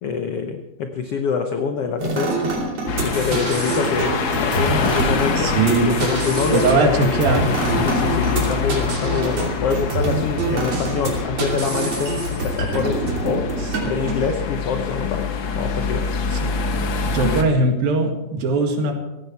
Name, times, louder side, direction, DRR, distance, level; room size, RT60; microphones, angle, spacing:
voice 1, 0.0-2.4 3.0-5.5 5.9-7.0 7.8-13.5 13.8-16.2, left 5 dB, 80° left, 5 dB, 1.3 m, -25 dB
sound 1, 2.0-14.1, right 3 dB, 45° right, 3.7 m, -26 dB
sound 2, 2.9-17.4, left 5 dB, 65° left, 1.2 m, -25 dB
voice 2, 5.4-5.9 6.5-7.5 13.8-13.9 16.3-16.5 17.1-18.9, right 3 dB, 80° right, 3 dB, 3.8 m, -20 dB
17.0 x 15.5 x 4.6 m, 1.0 s
omnidirectional pair, 4.1 m